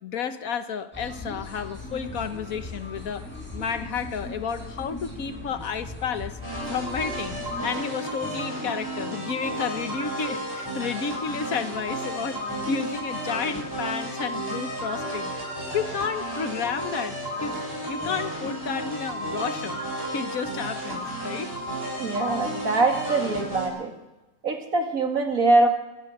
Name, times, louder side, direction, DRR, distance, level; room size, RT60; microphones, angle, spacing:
voice 1, 0.0-3.3 3.5-6.4 6.7-12.4 12.7-15.3 15.7-17.6 17.9-19.8 20.1-21.5, left 6 dB, 85° left, 10 dB, 1.6 m, -31 dB
sound 1, 0.9-7.7, left 2 dB, 10° left, 6.4 m, -39 dB
sound 2, 6.4-23.7, right 1 dB, 15° right, 8.0 m, -32 dB
voice 2, 22.0-23.9 24.4-25.7, right 2 dB, 85° right, 4 dB, 3.0 m, -23 dB
26.0 x 15.0 x 6.7 m, 1.1 s
omnidirectional pair, 1.4 m